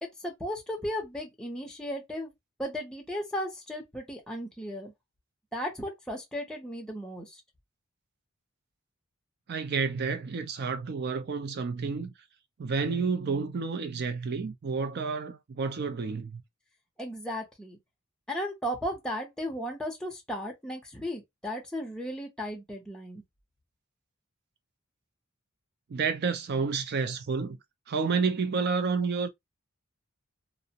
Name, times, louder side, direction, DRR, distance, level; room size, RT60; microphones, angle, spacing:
voice 1, 0.0-2.3 2.6-4.9 5.5-7.3 17.0-17.8 18.3-23.2, equal, 5° left, 0.6 m, -35 dB
voice 2, 9.5-12.1 12.6-16.4 25.9-27.6 27.9-29.3, right 5 dB, 50° right, 0.4 m, -30 dB
2.4 x 2.0 x 2.8 m
head